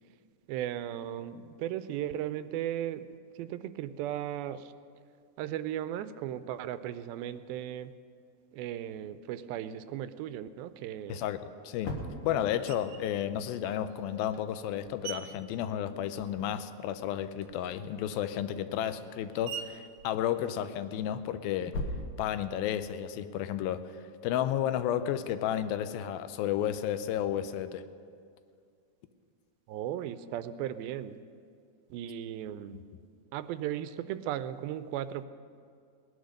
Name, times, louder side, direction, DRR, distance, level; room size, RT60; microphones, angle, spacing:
voice 1, 0.5-3.0 3.4-4.7 5.4-7.9 8.5-11.2 12.2-12.4 29.7-31.2 31.9-32.8 33.3-35.3, right 11 dB, 85° right, 13 dB, 2.4 m, -36 dB
voice 2, 11.1-11.9 12.2-21.8 22.2-23.8 24.2-27.8 32.7-32.8, left 10 dB, 85° left, 11 dB, 2.4 m, -32 dB
sound 1, 11.6-13.1 15.9-19.5 20.7-22.9, left 1 dB, 65° left, 2.6 m, -42 dB
Screech, 12.7-13.2 13.9-16.6 16.9-21.2, right 8 dB, 70° right, 2.1 m, -47 dB
19.0 x 10.5 x 6.4 m, 2.2 s
omnidirectional pair, 4.2 m